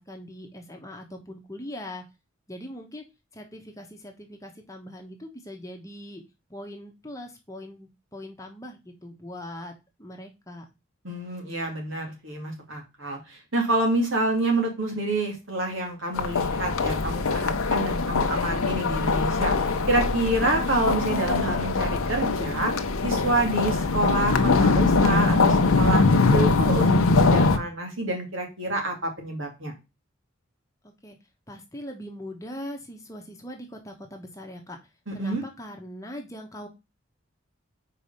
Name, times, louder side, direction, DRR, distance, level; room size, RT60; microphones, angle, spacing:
voice 1, 0.0-2.0 2.5-3.0 3.3-6.2 6.5-9.7 10.0-10.6 30.8-31.2 31.5-34.8 35.1-36.7, left 1 dB, 15° left, 2 dB, 1.0 m, -41 dB
voice 2, 11.0-22.7 23.0-26.0 26.3-29.7 35.1-35.4, right 2 dB, 70° right, 2 dB, 2.3 m, -28 dB
sound 1, 16.2-27.6, left 3 dB, 85° left, 0.8 m, -22 dB
4.9 x 4.7 x 5.5 m, 0.26 s
head